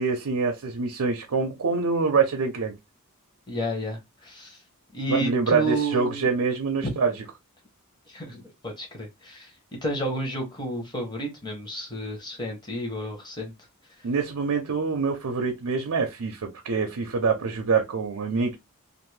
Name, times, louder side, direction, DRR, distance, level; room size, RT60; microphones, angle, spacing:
voice 1, 0.0-2.7 5.1-7.1 14.0-18.5, right 4 dB, 85° right, 0.6 m, -25 dB
voice 2, 3.5-4.6 4.9-6.3 6.8-7.0 8.1-13.5, right 1 dB, 20° left, 0.9 m, -31 dB
2.6 x 2.5 x 3.2 m
head